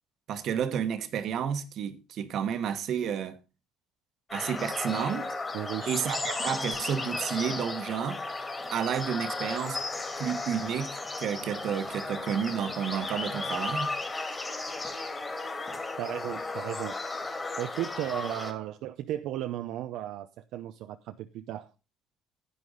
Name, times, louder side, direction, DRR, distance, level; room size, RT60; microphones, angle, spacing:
voice 1, 0.3-3.4 4.3-5.3 5.9-8.2 8.7-9.8 10.2-13.9, right 8 dB, 55° right, 1.4 m, -31 dB
sound 1, 4.3-18.5, left 3 dB, 15° left, 2.8 m, -35 dB
voice 2, 5.5-6.0 16.0-17.3 17.6-21.7, right 13 dB, 70° right, 0.7 m, -35 dB
10.5 x 9.6 x 4.0 m
cardioid pair, 125°, 0 cm